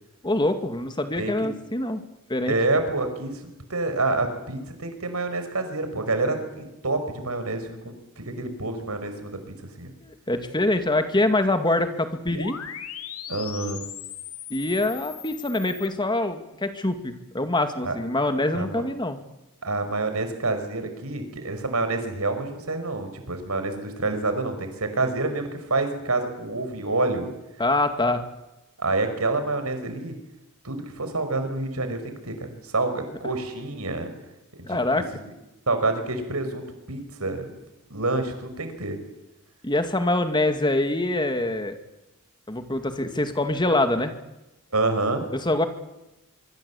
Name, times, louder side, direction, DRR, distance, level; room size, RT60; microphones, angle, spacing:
voice 1, 0.2-2.0 2.3-2.5 10.0-12.6 14.5-19.2 27.6-28.2 34.7-35.0 39.6-41.7 42.5-44.1 45.3-45.7, left 2 dB, 20° left, 8 dB, 2.3 m, -24 dB
voice 2, 1.2-1.5 2.5-9.9 13.3-13.8 17.8-18.0 18.5-18.8 19.6-27.3 28.8-30.1 30.6-34.1 34.5-35.0 35.7-37.5 37.9-39.0 44.7-45.2, right 2 dB, 90° right, 8 dB, 5.3 m, -28 dB
sound 1, 12.3-15.9, left 9 dB, 85° left, 2.7 m, -38 dB
24.5 x 24.5 x 8.5 m, 0.96 s
head